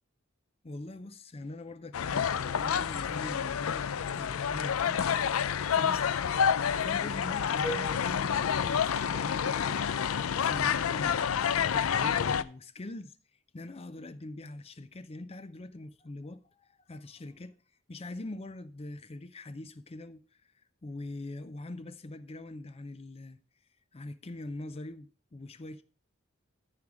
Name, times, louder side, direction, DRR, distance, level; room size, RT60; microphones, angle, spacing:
voice 1, 0.6-5.1 5.7-6.0 6.3-9.8 10.4-13.2 13.5-17.5 17.9-20.5 20.8-23.4 23.9-25.8, left 2 dB, 30° left, 0.5 m, -43 dB
sound 1, 1.9-12.4, left 7 dB, 85° left, 0.5 m, -29 dB
sound 2, 7.6-9.7, right 1 dB, 10° left, 1.8 m, -42 dB
13.5 x 4.9 x 4.8 m
head